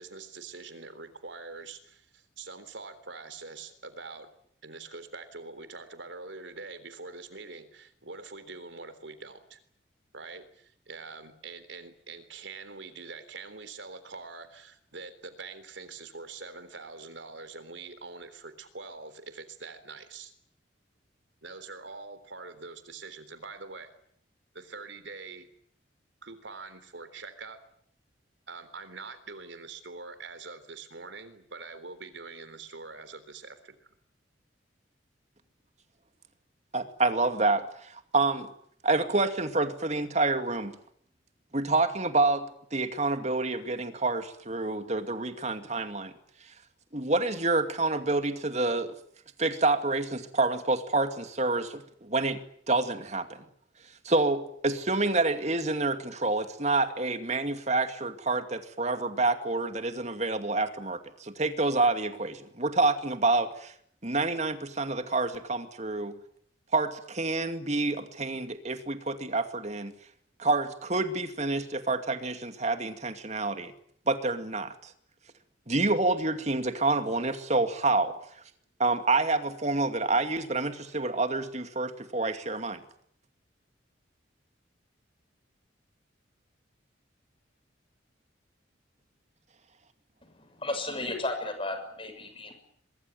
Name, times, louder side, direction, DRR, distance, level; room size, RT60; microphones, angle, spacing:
voice 1, 0.0-4.3 4.6-9.6 10.1-20.3 21.4-23.9 24.5-25.5 26.2-27.6 28.5-33.9, right 4 dB, 75° right, 11 dB, 3.6 m, -44 dB
voice 2, 36.7-38.5 38.8-40.8 41.5-46.1 46.9-48.9 49.4-53.4 54.0-63.7 64.0-66.2 66.7-69.9 70.4-73.7 74.1-74.9 75.7-78.2 78.8-82.8, right 3 dB, 35° right, 8 dB, 2.4 m, -28 dB
voice 3, 90.2-92.6, left 2 dB, 30° left, 8 dB, 6.6 m, -34 dB
23.0 x 23.0 x 9.4 m, 0.66 s
head